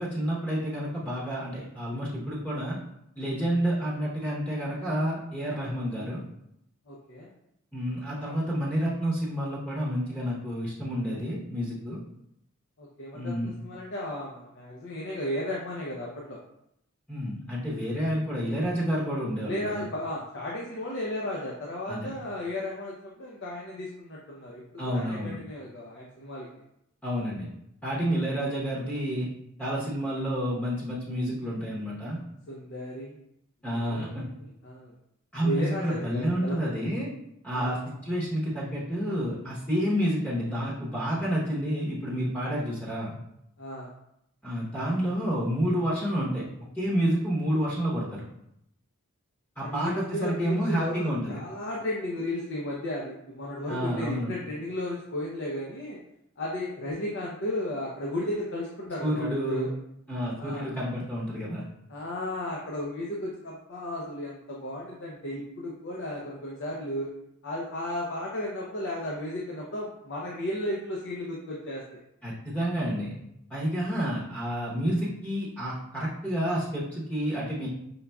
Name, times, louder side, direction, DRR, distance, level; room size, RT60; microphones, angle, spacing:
voice 1, 0.0-2.8 3.2-6.2 7.7-12.0 13.1-13.5 17.1-19.8 21.9-22.1 24.8-25.4 27.0-27.5 27.8-29.3 29.6-32.2 33.6-34.2 35.3-37.1 37.4-43.1 44.4-46.4 46.7-48.3 49.6-51.4 53.7-54.3 59.0-59.7 60.1-61.6 72.2-73.1 73.5-77.7, equal, 5° left, -7 dB, 0.9 m, -29 dB
voice 2, 6.9-7.3 12.8-16.4 19.4-26.5 28.2-28.6 32.5-33.2 33.7-34.9 35.4-36.6 37.5-37.8 43.6-43.9 49.6-56.0 56.4-59.7 60.4-60.7 61.9-67.1 67.4-71.8, left 1 dB, 55° left, -3 dB, 0.6 m, -34 dB
5.4 x 3.5 x 2.3 m, 0.78 s
head